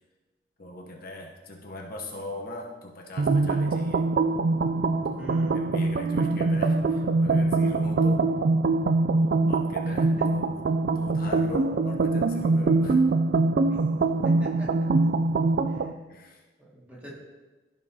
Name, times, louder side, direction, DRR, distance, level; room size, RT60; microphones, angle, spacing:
voice 1, 0.6-4.1 5.0-8.3 9.1-13.0 16.1-16.4, left 1 dB, 55° left, 0 dB, 0.9 m, -41 dB
sound 1, 3.2-15.9, right 3 dB, 60° right, 0.3 m, -23 dB
voice 2, 5.1-5.6 9.8-10.0 14.2-14.9 15.7-15.9 16.6-17.1, equal, 10° right, -6 dB, 2.3 m, -44 dB
15.0 x 5.2 x 2.8 m, 1.2 s
head